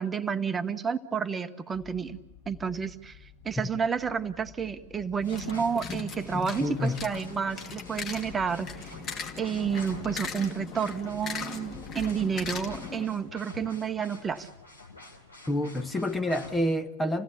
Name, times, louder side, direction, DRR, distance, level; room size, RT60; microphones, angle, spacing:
voice 1, 0.0-2.2 2.5-3.2 3.4-8.9 9.4-14.5, right 6 dB, 15° right, 11 dB, 1.1 m, -30 dB
sound 1, 1.7-12.9, left 6 dB, 50° left, 7.9 m, -51 dB
sound 2, 5.2-16.6, left 2 dB, 75° left, 3.7 m, -47 dB
sound 3, 5.2-13.0, left 5 dB, 30° left, 2.6 m, -39 dB
voice 2, 6.6-7.0 15.5-17.2, left 1 dB, 10° left, 8 dB, 0.9 m, -28 dB
28.5 x 17.0 x 8.3 m, 1.1 s
figure-of-eight pair, 90°, 0 cm